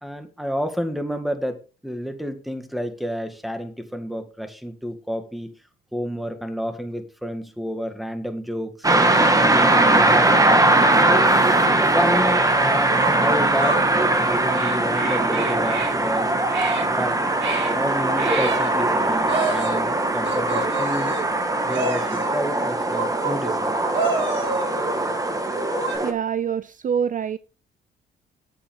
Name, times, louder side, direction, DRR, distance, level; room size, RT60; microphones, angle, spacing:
voice 1, 0.0-5.5 5.9-8.7 9.4-10.3 10.8-10.9 11.2-11.4 11.6-16.3 16.9-17.2 17.7-21.2 21.6-23.7, equal, ahead, 1.9 m, -30 dB
sound 1, 8.8-26.1, right 2 dB, 15° right, 1.7 m, -20 dB
sound 2, 12.1-12.2 12.9-13.8 14.5-15.9 16.5-16.9 17.4-17.7 18.2-18.7 19.3-19.9 20.2-21.3 21.7-22.3 22.9-23.6 23.9-25.0 25.5-26.0, right 3 dB, 70° right, 4.7 m, -28 dB
voice 2, 26.0-27.4, right 7 dB, 40° right, 0.5 m, -25 dB
10.5 x 8.0 x 3.7 m
cardioid pair, 90°, 20 cm